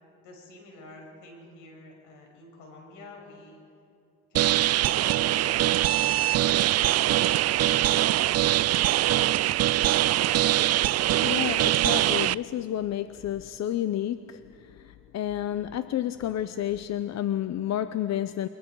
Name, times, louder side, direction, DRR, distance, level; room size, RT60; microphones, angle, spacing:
voice 1, 0.2-3.6 4.3-6.1 6.7-8.7, left 2 dB, 90° left, 6.4 m, -48 dB
sound 1, 4.3-12.3, right 14 dB, 55° right, 0.4 m, -23 dB
voice 2, 11.0-18.5, left 11 dB, 60° left, 0.7 m, -30 dB
28.0 x 23.5 x 4.7 m
cardioid pair, 90°, 30 cm